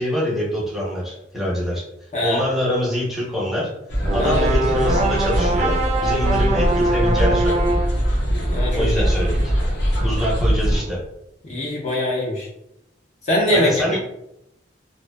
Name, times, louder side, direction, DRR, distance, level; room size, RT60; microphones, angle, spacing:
voice 1, 0.0-1.8 2.2-3.7 4.1-7.8 8.7-9.4 10.0-11.0 13.5-14.0, equal, ahead, -5 dB, 0.7 m, -24 dB
St James Park - Still Waiting for Changing of the guards, 3.9-10.8, equal, 85° left, 0.7 m, -21 dB
sound 1, 4.0-8.0, right 2 dB, 40° right, 0.3 m, -23 dB
voice 2, 8.5-8.9 11.4-12.5 13.2-13.8, left 1 dB, 40° left, -3 dB, 0.5 m, -22 dB
2.5 x 2.2 x 2.2 m, 0.82 s
head